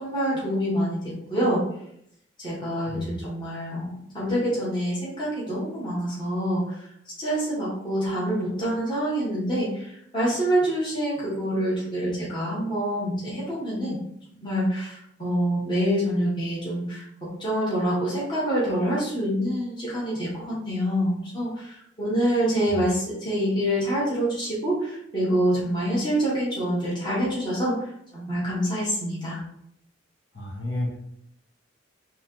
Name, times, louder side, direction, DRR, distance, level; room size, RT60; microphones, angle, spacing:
voice 1, 0.0-1.6 2.4-6.9 7.2-14.0 14.3-29.4, equal, 25° left, -8 dB, 1.2 m, -26 dB
voice 2, 2.8-3.2 22.7-22.8 30.3-31.0, left 1 dB, 65° left, -2 dB, 0.9 m, -31 dB
3.0 x 2.9 x 3.6 m, 0.72 s
head